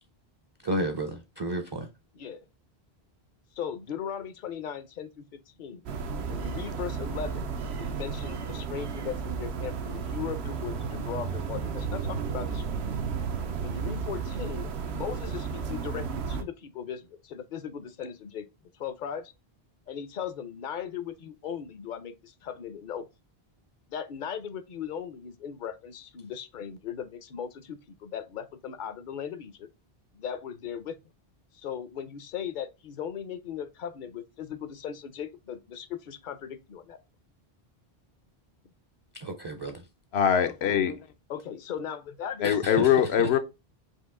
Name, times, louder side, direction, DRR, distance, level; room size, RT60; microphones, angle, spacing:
voice 1, 0.6-1.9 39.2-39.8 42.4-42.9, right 1 dB, 35° right, 0.4 m, -32 dB
voice 2, 2.1-2.4 3.5-5.8 6.3-7.5 7.8-12.7 13.6-18.4 18.8-19.3 19.9-23.1 23.9-29.7 30.1-31.0 31.5-37.0 41.3-42.8, left 8 dB, 60° left, 0.6 m, -38 dB
sound 1, 5.9-16.4, right 5 dB, 85° right, 0.9 m, -33 dB
voice 3, 40.1-41.1 42.4-43.4, left 9 dB, 80° left, 0.9 m, -23 dB
4.4 x 2.7 x 3.6 m
omnidirectional pair, 1.1 m